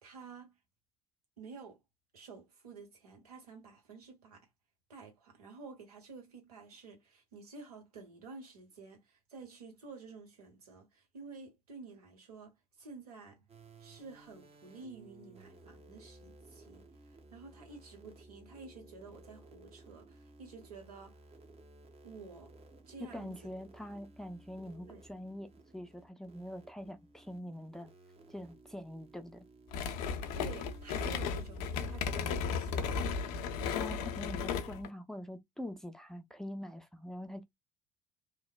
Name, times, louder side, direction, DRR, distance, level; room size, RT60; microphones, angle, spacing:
voice 1, 0.0-0.6 1.4-1.8 2.1-4.5 4.9-13.4 13.8-21.2 22.0-22.5 22.9-23.3 24.9-25.0 30.3-33.1, right 4 dB, 80° right, 0.9 m, -51 dB
sound 1, 13.5-33.0, right 2 dB, 30° right, 0.9 m, -58 dB
voice 2, 23.1-27.9 28.3-29.4 33.7-37.4, left 1 dB, ahead, 0.5 m, -44 dB
sound 2, 29.7-34.9, left 6 dB, 65° left, 0.5 m, -35 dB
3.0 x 2.0 x 2.2 m
figure-of-eight pair, 55°, 19 cm